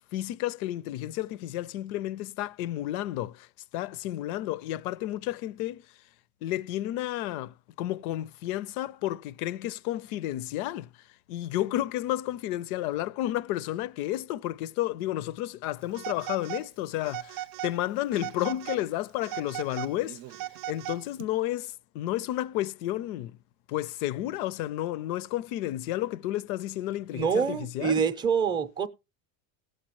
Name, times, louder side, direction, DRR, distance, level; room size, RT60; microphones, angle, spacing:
voice 1, 0.0-3.5 3.7-5.8 6.4-10.9 11.3-20.2 20.7-23.4 23.7-28.0, left 14 dB, 70° left, 0.6 m, -31 dB
Telephone, 15.9-16.7 17.0-17.8 18.1-18.8 19.2-21.2, right 13 dB, 55° right, 0.5 m, -38 dB
voice 2, 27.1-28.9, right 6 dB, 10° right, 0.5 m, -26 dB
17.5 x 6.5 x 2.9 m
cardioid pair, 155°, 45 cm